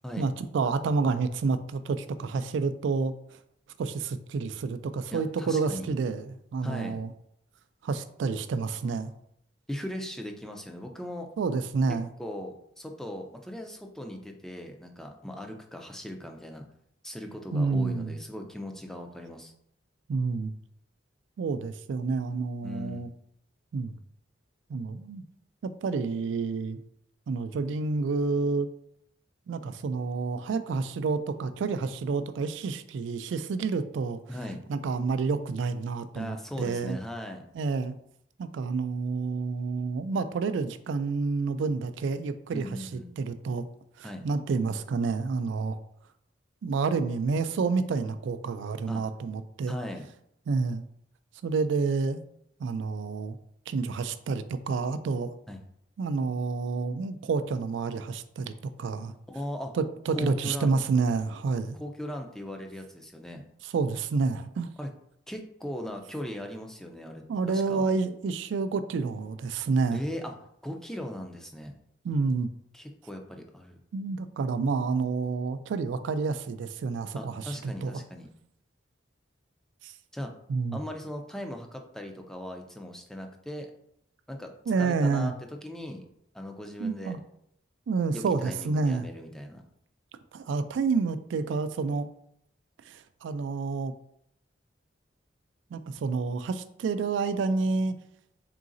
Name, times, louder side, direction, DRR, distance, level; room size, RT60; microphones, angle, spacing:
voice 1, 0.2-3.4 3.8-7.1 7.8-9.1 11.4-12.1 17.5-18.1 20.1-20.5 21.4-23.1 23.7-24.0 24.7-25.2 25.6-26.8 27.3-28.7 29.5-34.2 34.7-37.0 37.5-37.9 38.4-42.9 43.2-43.6 44.0-45.8 46.6-49.8 50.5-50.9 51.4-52.2 52.6-53.4 53.7-55.3 56.0-59.1 59.7-61.8 63.6-64.7 67.3-70.0 72.0-72.5 73.9-77.9 79.8-79.9 80.5-80.8 84.7-85.3 86.8-87.2 87.9-89.1 90.3-92.1 92.9-93.9 95.7-98.0, right 4 dB, 75° right, 12 dB, 0.3 m, -29 dB
voice 2, 5.1-5.9 6.6-7.0 9.7-11.3 12.2-16.7 17.0-19.5 22.6-23.1 34.3-34.6 36.1-37.4 42.5-43.1 44.0-44.3 48.9-49.0 49.7-50.1 55.5-55.6 59.3-59.7 60.1-60.7 61.7-63.4 64.8-64.9 65.3-67.9 69.9-70.3 70.6-71.7 72.7-73.8 77.1-78.3 80.1-80.3 80.7-83.7 84.3-84.5 84.8-85.3 85.6-86.1 86.3-87.2 88.1-89.6, left 1 dB, 5° left, 3 dB, 0.4 m, -38 dB
3.9 x 3.8 x 2.5 m, 0.72 s
head